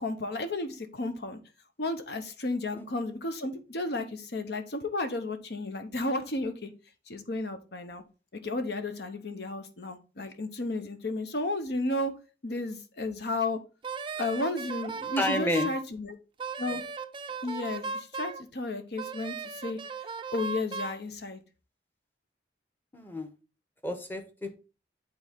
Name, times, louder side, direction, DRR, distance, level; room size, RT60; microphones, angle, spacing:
voice 1, 0.0-1.4 1.8-6.7 7.1-8.0 8.4-12.1 12.4-13.6 14.2-16.1 16.6-16.8 17.4-19.8 20.3-21.4, left 2 dB, 65° left, 0.9 m, -33 dB
Wind instrument woodwind instrument, 13.8-15.8 16.4-18.4 19.0-21.0, right 4 dB, 30° right, 0.4 m, -36 dB
voice 2, 15.2-15.7 22.9-23.3 23.8-24.6, left 1 dB, 10° left, 0.9 m, -30 dB
8.9 x 3.8 x 3.5 m
head